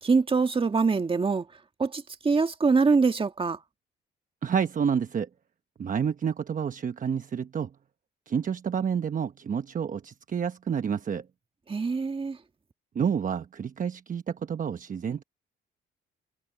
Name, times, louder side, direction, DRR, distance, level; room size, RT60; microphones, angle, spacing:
voice 1, 0.0-1.5 1.8-3.6 11.7-12.4, right 4 dB, 25° right, 1.9 m, -24 dB
voice 2, 4.4-5.3 5.8-7.7 8.3-11.3 12.9-15.2, right 7 dB, 40° right, 1.0 m, -29 dB
cardioid pair, 90°, 20 cm